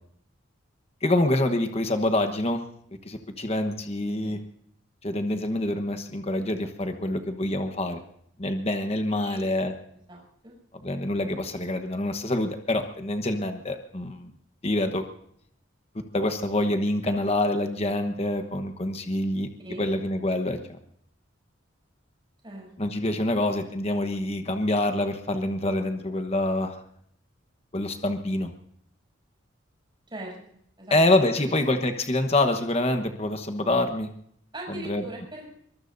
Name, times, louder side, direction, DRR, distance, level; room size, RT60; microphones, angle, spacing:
voice 1, 1.0-2.6 3.0-4.4 5.0-8.0 8.4-9.7 10.8-14.3 14.6-15.0 16.1-19.5 19.8-20.8 22.8-26.8 27.7-28.5 30.9-34.1 34.7-35.0, left 1 dB, 30° left, 7 dB, 1.1 m, -26 dB
voice 2, 10.1-10.5 17.1-17.2 19.6-19.9 22.4-22.7 23.4-23.5 30.1-30.3 30.8-31.0 31.3-31.8 34.5-35.5, right 1 dB, 25° right, -2 dB, 7.2 m, -40 dB
23.5 x 22.0 x 2.7 m, 0.68 s
head